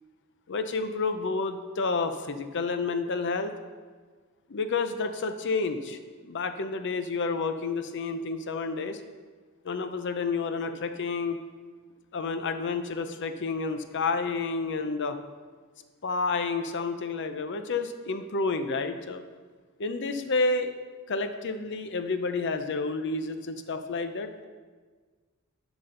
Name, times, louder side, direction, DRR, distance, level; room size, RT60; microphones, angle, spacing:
voice 1, 0.5-3.5 4.5-9.0 9.6-11.4 12.1-15.2 16.0-19.2 19.8-20.7 21.1-24.5, left 4 dB, 55° left, 8 dB, 0.6 m, -30 dB
11.0 x 6.0 x 3.8 m, 1.5 s
head